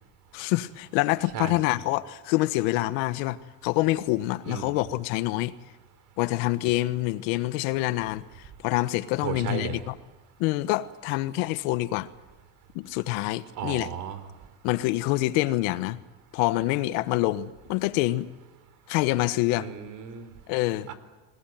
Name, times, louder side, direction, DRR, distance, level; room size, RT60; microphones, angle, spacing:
voice 1, 0.3-5.5 6.2-8.2 8.6-9.9 10.4-12.1 12.7-13.9 14.6-16.0 16.3-18.3 18.9-19.7 20.5-20.9, left 18 dB, 75° left, 1.3 m, -26 dB
voice 2, 9.2-9.8 13.6-14.2 19.5-20.3 20.9-21.0, right 8 dB, 50° right, 3.9 m, -34 dB
26.5 x 20.0 x 9.2 m
cardioid pair, 135°, 39 cm